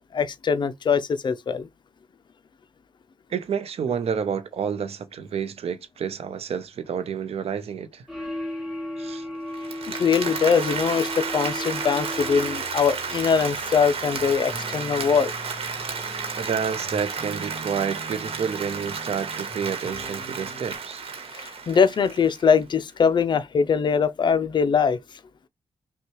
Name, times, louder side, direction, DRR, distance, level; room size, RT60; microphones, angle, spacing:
voice 1, 0.1-1.7 9.9-15.3 21.3-25.0, left 6 dB, 50° left, 0.5 m, -22 dB
voice 2, 3.3-8.0 9.0-9.2 16.4-21.0, right 7 dB, 90° right, 0.7 m, -29 dB
sound 1, 8.1-12.9, left 1 dB, ahead, 1.5 m, -34 dB
Applause, 9.5-22.6, right 5 dB, 70° right, 1.2 m, -32 dB
sound 2, 12.1-20.8, equal, 20° left, 1.4 m, -43 dB
5.7 x 2.3 x 3.0 m
wide cardioid pair, 170°, 10 cm